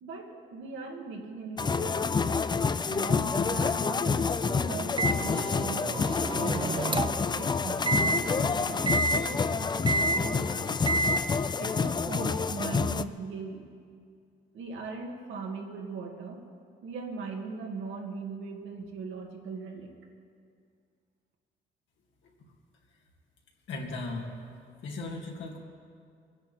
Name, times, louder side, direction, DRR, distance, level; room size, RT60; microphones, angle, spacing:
voice 1, 0.0-2.1 2.9-6.0 6.4-10.8 11.6-13.6 14.5-16.4 16.8-19.9, right 4 dB, 75° right, 0 dB, 2.2 m, -39 dB
sound 1, 1.6-13.1, left 5 dB, 20° left, 0.4 m, -28 dB
Microwave oven, 5.0-7.3 7.9-8.2 8.9-9.2 9.9-10.2 10.9-11.2, right 2 dB, 25° right, 0.7 m, -28 dB
voice 2, 23.7-24.3 24.8-25.6, left 3 dB, 70° left, -1 dB, 2.6 m, -36 dB
22.0 x 10.5 x 4.4 m, 2.2 s
cardioid pair, 90°, 20 cm